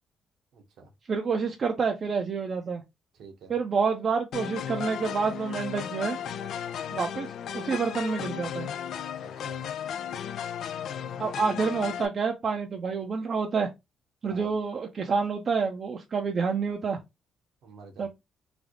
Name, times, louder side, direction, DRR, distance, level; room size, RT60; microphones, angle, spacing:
voice 1, 0.5-0.9 3.1-3.5 9.2-9.6 14.3-14.5 17.6-18.1, right 4 dB, 75° right, 1.0 m, -49 dB
voice 2, 1.1-2.8 3.5-6.2 6.9-8.7 11.2-13.7 14.2-17.0 18.0-18.1, right 5 dB, 50° right, 0.5 m, -28 dB
sound 1, 4.3-12.1, left 9 dB, 70° left, 0.3 m, -35 dB
3.3 x 2.0 x 3.6 m
cardioid pair, 90°, 0 cm